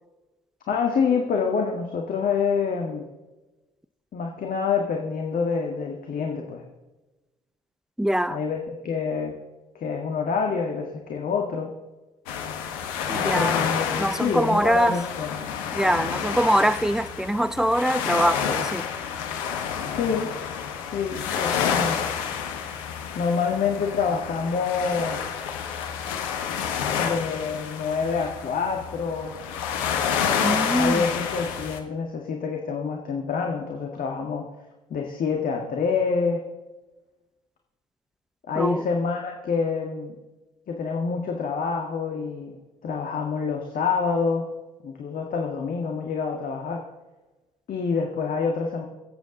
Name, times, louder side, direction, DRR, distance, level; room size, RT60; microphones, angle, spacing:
voice 1, 0.7-3.1 4.1-6.6 8.3-9.4 9.8-11.7 13.3-15.5 19.9-20.3 20.9-22.1 23.2-25.2 27.0-29.3 30.8-34.5 34.9-36.4 38.5-40.2 40.7-44.5 44.8-46.8 47.7-48.9, left 5 dB, 50° left, 1.8 m, -27 dB
voice 2, 8.0-8.4 13.1-13.6 13.9-15.0 15.8-18.9 30.4-31.0 38.6-38.8, right 1 dB, 5° right, 0.6 m, -23 dB
sound 1, 12.3-31.8, left 7 dB, 75° left, 1.1 m, -29 dB
23.5 x 8.3 x 4.0 m
figure-of-eight pair, 45°, 18 cm